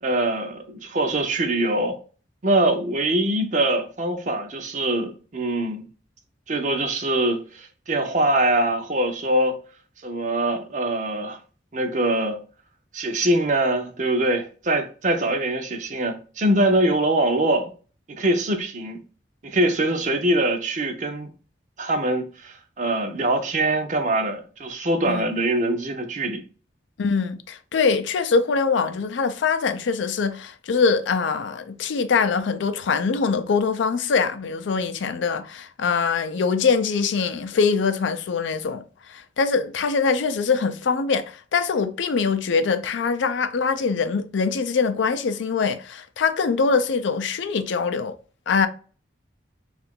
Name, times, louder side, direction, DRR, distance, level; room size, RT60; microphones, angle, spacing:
voice 1, 0.0-2.0 2.4-5.8 6.5-9.6 10.0-11.4 11.7-12.4 12.9-17.7 18.2-19.0 19.4-21.3 21.8-26.4, right 1 dB, 40° right, 0.5 m, -23 dB
voice 2, 27.0-38.8 39.1-48.1 48.5-48.7, left 5 dB, 80° left, 0.4 m, -23 dB
2.7 x 2.4 x 3.6 m
head